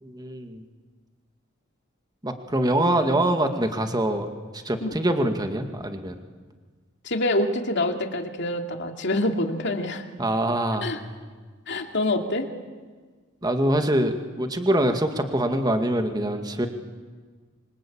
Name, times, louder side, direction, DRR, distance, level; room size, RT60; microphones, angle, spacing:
voice 1, 0.0-0.6 2.2-6.1 10.2-10.9 13.4-16.7, right 1 dB, 20° right, 6 dB, 1.9 m, -24 dB
voice 2, 7.0-10.0 10.8-11.0 11.7-12.5, left 1 dB, 55° left, 4 dB, 2.5 m, -26 dB
27.0 x 24.5 x 8.7 m, 1.5 s
head